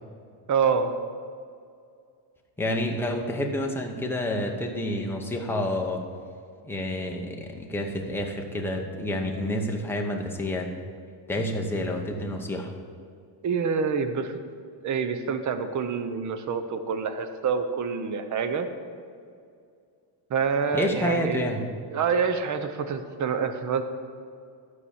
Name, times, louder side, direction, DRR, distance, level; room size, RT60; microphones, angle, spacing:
voice 1, 0.5-0.9 13.4-14.4 14.8-18.7 20.3-21.4 21.9-23.8, right 6 dB, 40° right, 9 dB, 0.8 m, -27 dB
voice 2, 2.6-6.0 6.6-10.7 11.3-12.7 20.7-21.6, left 1 dB, 5° left, 1 dB, 0.8 m, -29 dB
12.5 x 4.8 x 7.1 m, 2.3 s
cardioid pair, 155°, 47 cm